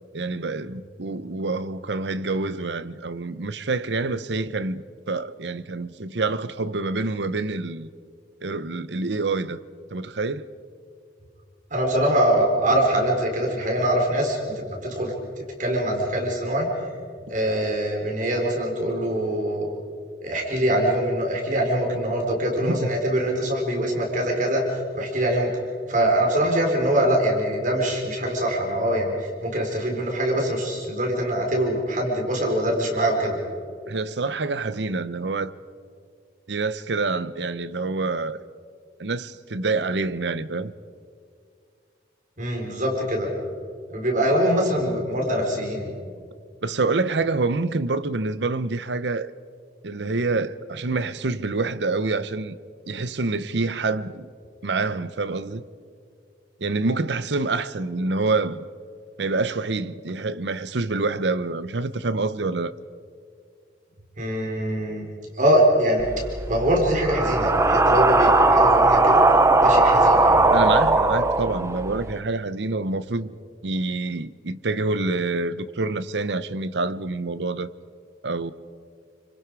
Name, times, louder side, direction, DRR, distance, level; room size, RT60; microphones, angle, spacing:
voice 1, 0.1-7.9 8.4-9.6 9.9-10.5 22.6-22.9 33.9-35.5 36.5-38.4 39.0-40.7 46.6-49.3 49.8-52.6 52.9-54.3 54.6-55.6 56.6-58.6 59.2-62.7 70.5-73.4 73.6-77.7 78.2-78.5, right 3 dB, 80° right, 0.8 m, -27 dB
voice 2, 11.7-16.9 17.3-19.7 20.2-24.6 24.9-25.5 25.9-33.4 42.4-43.3 43.9-45.9 64.2-65.1 65.3-69.2 69.6-70.5, right 1 dB, 45° right, 4.2 m, -23 dB
sound 1, 66.0-72.1, right 2 dB, 15° right, 0.8 m, -18 dB
28.0 x 25.0 x 4.8 m
head